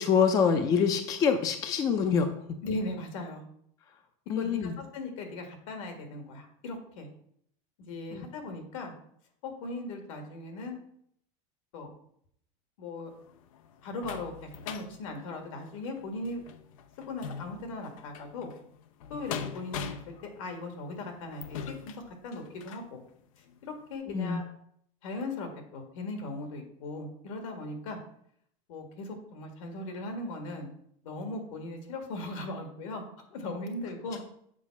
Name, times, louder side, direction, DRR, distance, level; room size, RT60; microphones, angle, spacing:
voice 1, 0.0-2.6 4.3-4.8 8.1-8.3 24.1-24.4, left 6 dB, 20° left, 7 dB, 0.4 m, -26 dB
voice 2, 2.6-3.5 4.4-7.1 7.9-8.9 9.4-10.8 11.7-11.9 12.8-13.1 13.8-16.4 17.1-18.5 19.1-22.0 22.2-23.0 23.7-24.4 25.0-28.0 28.7-30.7 31.0-33.0 33.3-34.2, left 2 dB, 75° left, 4 dB, 1.9 m, -38 dB
sound 1, 13.1-22.9 23.5-23.6 23.9-24.0, left 7 dB, 90° left, 0.7 m, -43 dB
7.5 x 4.3 x 6.0 m, 0.69 s
supercardioid pair, 175°, 17 cm